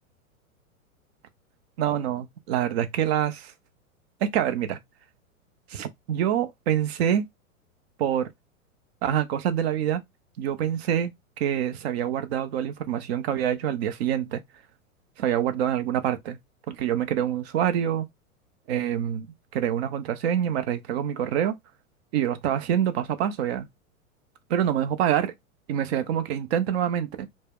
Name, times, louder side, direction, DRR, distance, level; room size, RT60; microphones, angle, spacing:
voice 1, 1.8-3.5 4.2-4.8 5.7-7.2 8.0-8.3 9.0-10.0 10.4-11.1 11.4-14.4 15.2-16.4 16.7-18.1 18.7-19.3 19.5-21.5 22.1-23.7 24.5-25.3 25.7-27.3, right 10 dB, 50° right, 0.5 m, -26 dB
2.2 x 2.0 x 3.4 m
hypercardioid pair, 115°, 41 cm